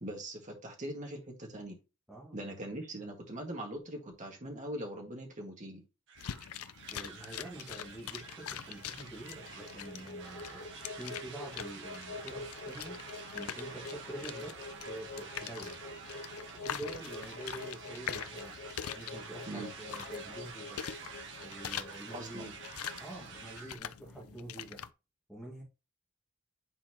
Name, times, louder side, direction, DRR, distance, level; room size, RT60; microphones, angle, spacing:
voice 1, 0.0-1.8 2.3-5.8 19.5-19.7 22.1-22.5, right 1 dB, 35° right, 1 dB, 1.9 m, -41 dB
sound 1, 6.1-23.8, right 5 dB, 60° right, 1.5 m, -48 dB
sound 2, 6.2-24.9, left 9 dB, 85° left, 0.5 m, -45 dB
voice 2, 6.9-13.0 13.3-15.8 16.5-18.5 18.9-20.8 21.4-22.5 23.0-24.8 25.3-25.6, right 1 dB, ahead, -6 dB, 2.0 m, -46 dB
sound 3, 9.2-23.5, left 3 dB, 45° left, 0.9 m, -46 dB
9.1 x 4.4 x 3.0 m, 0.28 s
head